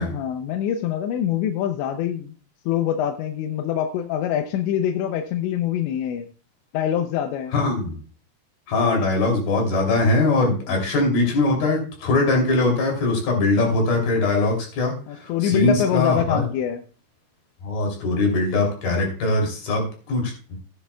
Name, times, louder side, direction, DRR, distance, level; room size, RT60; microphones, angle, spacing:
voice 1, 0.0-2.3 2.7-6.3 6.7-7.5 10.7-10.8 15.1-16.8, left 10 dB, 90° left, 6 dB, 3.1 m, -25 dB
voice 2, 7.5-8.0 8.7-14.9 15.2-16.4 17.6-20.3, left 2 dB, 60° left, 1 dB, 4.8 m, -21 dB
15.5 x 10.0 x 2.3 m, 0.38 s
omnidirectional pair, 5.1 m